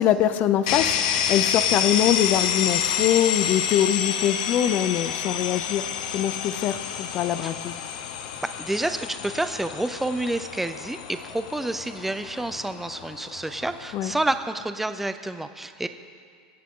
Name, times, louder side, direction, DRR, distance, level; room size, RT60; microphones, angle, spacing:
voice 1, 0.0-5.9 6.1-7.7 13.9-14.1, left 11 dB, 45° left, 12 dB, 0.7 m, -23 dB
sound 1, 0.7-14.4, left 8 dB, 75° left, 1.0 m, -29 dB
voice 2, 8.4-15.9, right 2 dB, 5° right, 9 dB, 0.6 m, -29 dB
24.5 x 8.3 x 3.8 m, 2.1 s
supercardioid pair, 130°, 4 cm